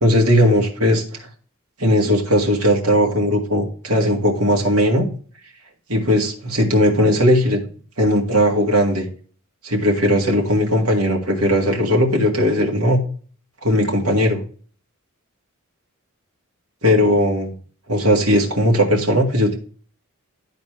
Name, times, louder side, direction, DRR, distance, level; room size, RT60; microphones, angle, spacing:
voice 1, 0.0-1.2 1.8-5.1 5.9-7.6 8.0-9.1 9.6-13.0 13.6-14.4 16.8-17.5 17.9-19.6, equal, 80° right, 0 dB, 1.8 m, -17 dB
11.5 x 4.2 x 3.2 m, 0.43 s
head